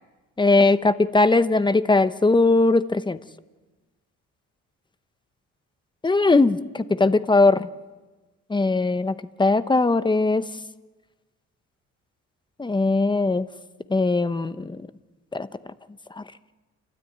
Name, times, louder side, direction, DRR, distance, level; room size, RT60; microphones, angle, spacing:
voice 1, 0.4-3.2 6.0-7.7 8.5-10.5 12.6-13.5 13.9-14.8 15.3-15.5 16.2-16.3, left 3 dB, 15° left, 13 dB, 0.9 m, -20 dB
29.0 x 13.0 x 9.4 m, 1.2 s
cardioid pair, 90°, 30 cm